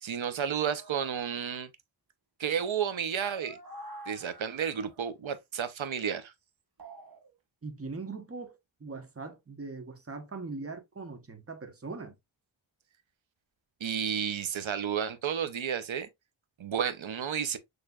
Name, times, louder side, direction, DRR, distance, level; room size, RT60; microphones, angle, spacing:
voice 1, 0.0-1.7 2.4-3.6 4.1-6.3 13.8-16.1 16.6-17.6, right 8 dB, 75° right, 0.8 m, -32 dB
sound 1, 0.7-1.3 3.0-5.0 6.8-7.3, right 1 dB, 45° right, 1.3 m, -48 dB
voice 2, 7.6-12.1, right 3 dB, 30° right, 1.1 m, -41 dB
6.6 x 3.2 x 2.3 m
wide cardioid pair, 75°, 47 cm